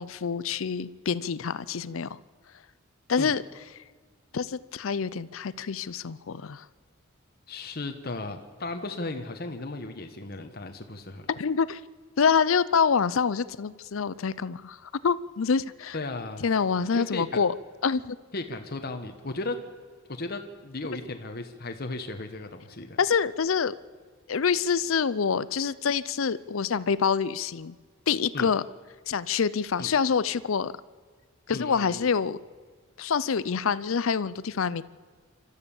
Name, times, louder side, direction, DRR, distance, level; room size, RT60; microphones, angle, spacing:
voice 1, 0.0-2.2 3.1-3.4 4.3-6.7 11.4-11.8 12.2-14.8 15.0-16.0 16.4-17.5 17.8-18.2 23.0-23.7 24.3-27.7 28.1-28.6 29.1-30.7 31.5-32.4 33.0-34.8, left 6 dB, 75° left, 18 dB, 0.5 m, -26 dB
voice 2, 7.5-11.3 15.9-16.5 16.9-17.4 18.3-19.6 20.1-23.0 28.3-28.5 29.8-29.9 31.5-32.1, left 2 dB, 50° left, 6 dB, 1.3 m, -35 dB
27.5 x 13.5 x 7.1 m, 1.5 s
head